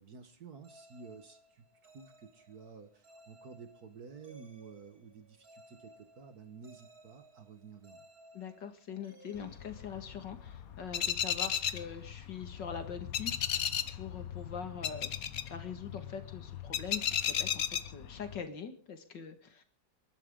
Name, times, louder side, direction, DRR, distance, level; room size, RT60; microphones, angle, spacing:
voice 1, 0.0-8.1, right 5 dB, 60° right, 9 dB, 1.9 m, -52 dB
sound 1, 0.6-10.4, right 1 dB, 35° right, 3.2 m, -60 dB
voice 2, 8.3-15.1 15.5-19.6, left 7 dB, 85° left, 8 dB, 2.5 m, -43 dB
sound 2, 9.3-18.4, left 8 dB, 55° left, 1.4 m, -36 dB
29.0 x 11.5 x 3.8 m, 0.40 s
omnidirectional pair, 1.9 m